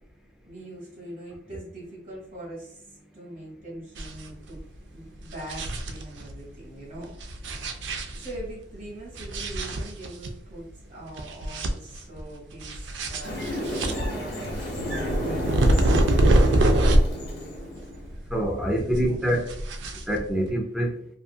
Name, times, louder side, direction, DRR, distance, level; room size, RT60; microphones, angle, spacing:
voice 1, 0.5-4.6 4.9-7.1 8.1-16.6 18.0-18.2 18.8-19.3, right 1 dB, 45° right, -5 dB, 1.4 m, -42 dB
sound 1, 4.0-4.3 4.6-4.7 5.2-6.3 7.1-8.5 9.2-10.3 10.7-10.8 11.2-12.2 12.6-17.3 17.6-18.5 18.8-20.5, right 1 dB, 75° right, 0.4 m, -24 dB
sound 2, 13.2-18.1, equal, 55° left, 0.9 m, -32 dB
voice 2, 18.3-19.5 20.1-20.9, right 1 dB, 5° right, 1 dB, 0.4 m, -25 dB
2.6 x 2.5 x 2.3 m, 0.67 s
head